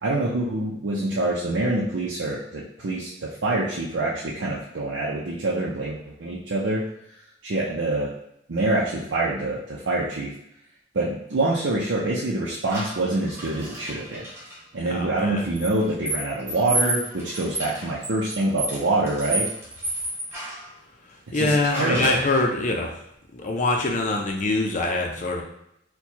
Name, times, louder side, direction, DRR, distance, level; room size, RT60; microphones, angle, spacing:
voice 1, 0.0-6.8 7.4-8.1 8.5-10.3 10.9-14.3 14.7-19.5 21.3-22.2, right 2 dB, 80° right, -6 dB, 0.6 m, -26 dB
sound 1, 12.7-14.6 15.5-20.7 21.7-22.4, right 2 dB, 15° right, 1.3 m, -31 dB
voice 2, 14.9-15.5 21.3-22.9 23.3-25.4, left 2 dB, 40° left, 2 dB, 0.6 m, -24 dB
4.5 x 2.3 x 2.8 m, 0.76 s
head